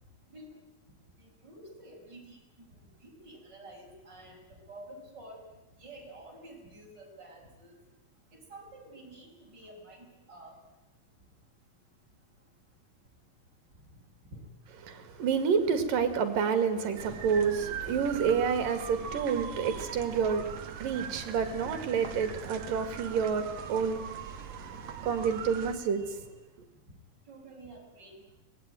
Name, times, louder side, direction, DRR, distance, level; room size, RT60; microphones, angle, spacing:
voice 1, 1.2-2.7 3.0-5.4 5.8-7.8 8.3-10.5 14.3-14.4 27.3-28.2, right 1 dB, 25° right, 6.6 m, -50 dB
voice 2, 14.8-26.2, right 6 dB, 70° right, 3.9 m, -29 dB
sound 1, 17.0-25.8, right 7 dB, 55° right, 2.1 m, -41 dB
24.5 x 20.5 x 9.2 m
omnidirectional pair, 4.1 m